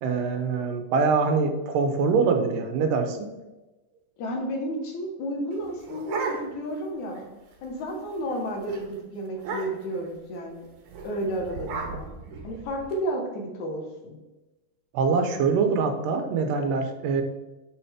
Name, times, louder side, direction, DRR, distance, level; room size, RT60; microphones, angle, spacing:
voice 1, 0.0-3.3 14.9-17.2, right 5 dB, 85° right, 6 dB, 2.5 m, -24 dB
voice 2, 4.2-7.2 7.6-10.7 11.0-12.1 12.4-14.2, equal, 65° left, 1 dB, 2.5 m, -32 dB
sound 1, 5.5-6.8 7.2-7.3 7.5-7.8 8.2-8.4 8.7-8.8 9.4-10.0 10.9-12.9, right 4 dB, 70° right, 2.7 m, -35 dB
7.0 x 6.8 x 3.5 m, 1.1 s
omnidirectional pair, 3.7 m